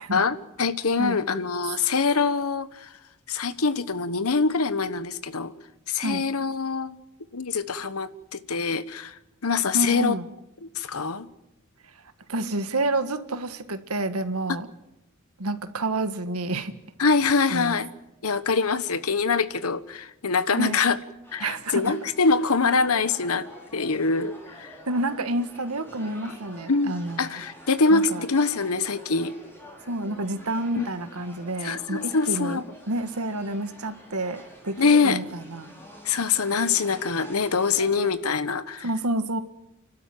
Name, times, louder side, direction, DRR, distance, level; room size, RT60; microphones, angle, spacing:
voice 1, 0.1-2.9 3.3-5.5 5.9-7.0 7.3-9.1 9.4-10.1 10.7-11.3 17.0-17.9 18.2-21.0 21.3-23.5 23.7-24.7 26.7-29.3 30.8-30.9 31.6-32.6 34.8-35.2 36.0-38.9, left 4 dB, 80° left, 1.1 m, -24 dB
voice 2, 9.7-10.3 12.3-14.7 15.4-16.7 17.5-17.7 20.5-20.8 21.4-21.9 24.8-27.4 27.9-28.3 29.9-35.7 38.8-39.4, right 2 dB, 85° right, 1.7 m, -29 dB
sound 1, 21.2-38.1, equal, 10° left, 5.3 m, -47 dB
29.5 x 12.5 x 9.3 m
head